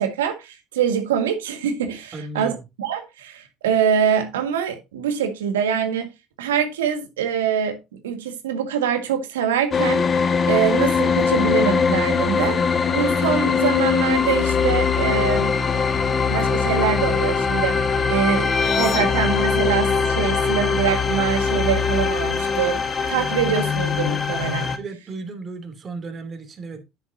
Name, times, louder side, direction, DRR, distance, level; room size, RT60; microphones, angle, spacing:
voice 1, 0.0-6.1 6.4-7.8 8.0-10.0 10.5-12.6 12.9-15.5 16.3-22.8 23.1-24.7, right 8 dB, 85° right, 1.7 m, -24 dB
voice 2, 2.1-2.6 24.8-26.8, right 3 dB, 35° right, 2.9 m, -34 dB
sound 1, 9.7-24.8, left 5 dB, 35° left, 1.6 m, -21 dB
9.8 x 8.0 x 2.7 m
hypercardioid pair, 70°, 0 cm